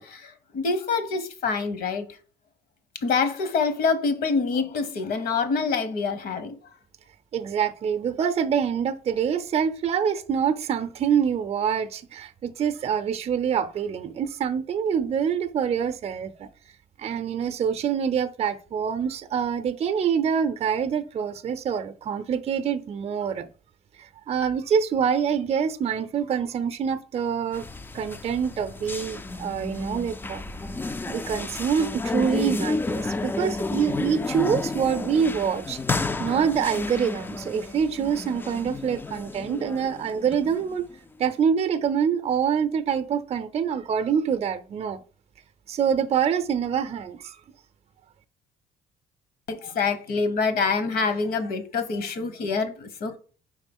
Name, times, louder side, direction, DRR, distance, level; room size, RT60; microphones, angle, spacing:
voice 1, 0.0-2.1 3.0-6.6 49.5-53.2, left 4 dB, 60° left, 1.1 m, -26 dB
voice 2, 7.3-16.5 17.0-23.5 24.0-27.6 27.9-30.4 31.1-35.8 36.2-40.9 41.2-45.0 45.7-47.4, right 7 dB, 40° right, 0.6 m, -25 dB
sound 1, 27.5-40.9, left 3 dB, 10° left, 0.3 m, -31 dB
4.9 x 3.7 x 5.3 m
cardioid pair, 110°, 17 cm